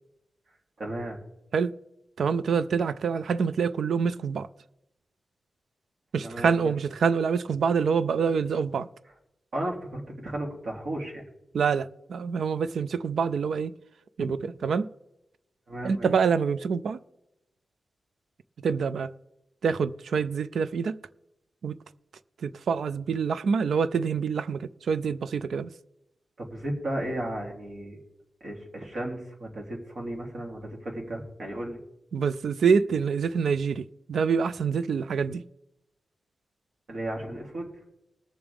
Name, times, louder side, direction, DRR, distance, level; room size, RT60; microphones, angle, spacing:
voice 1, 0.8-1.2 6.2-6.7 9.5-11.2 15.7-16.1 26.4-28.0 28.4-31.8 36.9-37.7, right 1 dB, 60° right, 3.1 m, -34 dB
voice 2, 2.2-4.5 6.1-8.9 11.5-13.7 14.2-14.9 15.8-17.0 18.6-19.1 19.6-21.0 21.6-21.7 22.4-25.7 32.1-35.4, right 6 dB, 80° right, 0.4 m, -26 dB
20.5 x 7.1 x 3.5 m
wide cardioid pair, 110°, 0 cm